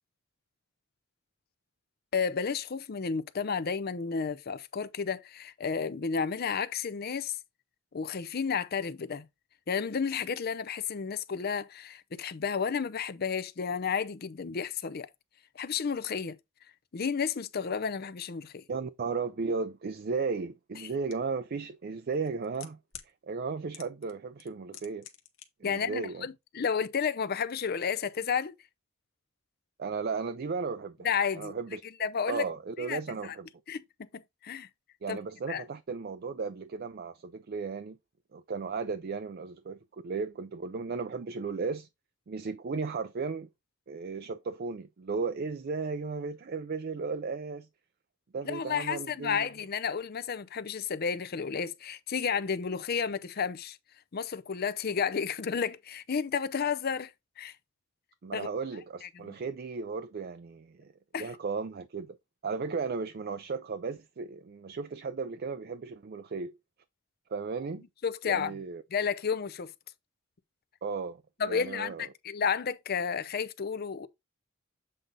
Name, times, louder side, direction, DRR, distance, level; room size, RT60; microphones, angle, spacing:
voice 1, 2.1-7.4 7.9-9.3 9.7-15.1 15.6-16.4 16.9-18.6 25.6-28.6 31.0-31.5 32.0-32.5 32.9-33.4 33.7-34.7 35.1-35.2 35.5-35.6 48.4-53.8 54.1-57.5 58.3-58.5 59.0-59.4 61.1-61.3 68.0-68.5 68.9-69.7 71.4-74.1, left 6 dB, 50° left, 0.5 m, -32 dB
voice 2, 18.7-22.8 23.2-25.1 25.6-26.3 29.8-31.1 31.4-31.8 32.3-33.5 35.0-38.0 38.3-41.9 42.3-43.5 43.9-47.7 48.3-49.5 58.2-60.9 61.2-62.2 62.4-66.6 67.3-67.8 68.2-68.8 70.8-72.1, right 4 dB, 50° right, 0.4 m, -35 dB
sound 1, 21.1-21.2 22.1-23.1 23.7-24.1 24.4-25.5 25.7-25.8, left 11 dB, 80° left, 1.1 m, -46 dB
7.7 x 3.9 x 3.8 m
head